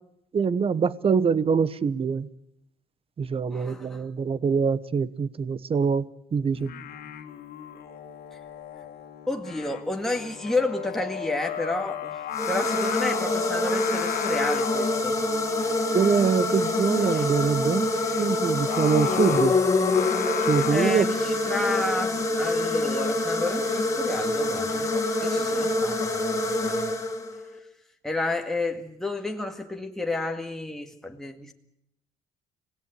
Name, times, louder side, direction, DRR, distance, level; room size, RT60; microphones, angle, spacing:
voice 1, 0.3-2.3 3.2-6.0 6.3-6.7 15.9-17.9 18.2-19.5 20.5-21.0, right 6 dB, 35° right, 1.1 m, -24 dB
voice 2, 3.5-4.0 9.3-12.2 12.5-15.2 16.9-17.4 20.7-24.9 25.2-27.0 28.0-31.5, left 2 dB, ahead, 2.0 m, -31 dB
Singing, 6.5-25.0, left 10 dB, 65° left, 2.3 m, -36 dB
sound 1, 12.3-27.5, left 2 dB, 20° left, 3.0 m, -26 dB
26.0 x 18.0 x 8.3 m
cardioid pair, 110°, 17 cm